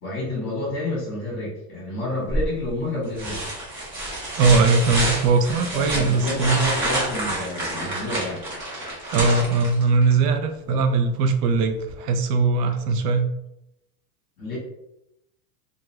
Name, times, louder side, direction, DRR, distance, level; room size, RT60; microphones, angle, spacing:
voice 1, 0.0-3.4 5.7-8.4 14.4-14.6, left 2 dB, 25° left, -6 dB, 1.0 m, -29 dB
sound 1, 2.3-2.7 3.2-10.1 11.9-12.0, right 1 dB, 25° right, 0.8 m, -28 dB
voice 2, 4.4-6.7 9.1-13.3, right 4 dB, 75° right, 7 dB, 0.6 m, -20 dB
2.4 x 2.4 x 3.0 m, 0.84 s
supercardioid pair, 150°, 47 cm